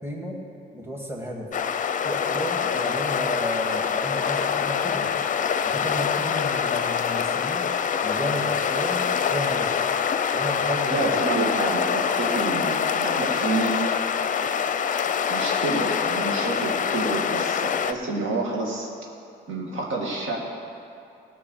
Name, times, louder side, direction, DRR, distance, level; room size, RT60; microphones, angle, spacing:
voice 1, 0.0-0.4 0.7-1.5 2.0-5.1 5.6-7.7 8.0-9.7 10.3-11.1, equal, 10° right, -1 dB, 2.2 m, -32 dB
sound 1, 1.5-17.9, left 7 dB, 40° left, 0.5 m, -25 dB
voice 2, 10.9-13.8 15.3-18.9 19.5-20.4, right 2 dB, 75° right, -2 dB, 2.2 m, -28 dB
16.5 x 6.0 x 6.5 m, 2.6 s
cardioid pair, 90°, 20 cm